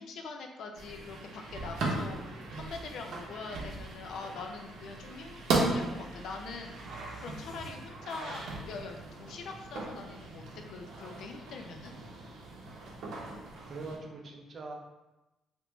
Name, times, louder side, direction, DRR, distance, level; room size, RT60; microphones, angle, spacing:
voice 1, 0.0-11.9, left 4 dB, 60° left, 3 dB, 0.4 m, -43 dB
sound 1, 0.7-14.0, right 2 dB, 70° right, 0.7 m, -37 dB
sound 2, 4.1-7.7, right 2 dB, 10° right, 1.0 m, -53 dB
voice 2, 13.6-14.8, right 3 dB, 35° right, 1 dB, 0.4 m, -42 dB
3.4 x 2.5 x 3.0 m, 1.0 s
cardioid pair, 170°, 0 cm